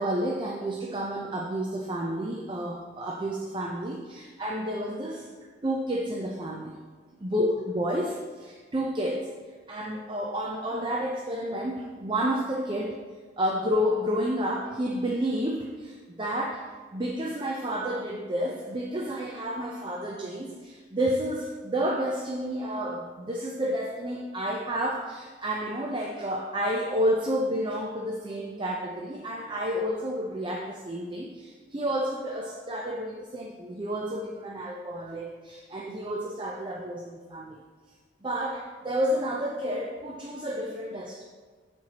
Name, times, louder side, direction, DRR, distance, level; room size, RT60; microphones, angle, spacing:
voice 1, 0.0-5.3 5.6-6.7 7.2-9.3 9.7-13.0 13.4-16.6 16.9-37.6 38.2-41.2, equal, 25° right, -1 dB, 0.6 m, -30 dB
13.5 x 4.6 x 2.9 m, 1.5 s
head